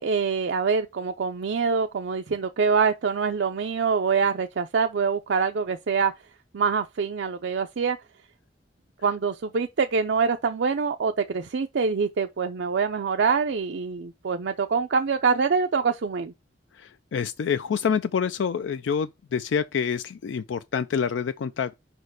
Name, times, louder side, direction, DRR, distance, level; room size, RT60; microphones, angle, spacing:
voice 1, 0.0-6.1 6.5-8.0 9.0-16.3, right 5 dB, 75° right, 0.5 m, -25 dB
voice 2, 16.7-21.8, left 6 dB, 90° left, 0.4 m, -27 dB
5.1 x 4.4 x 4.7 m
head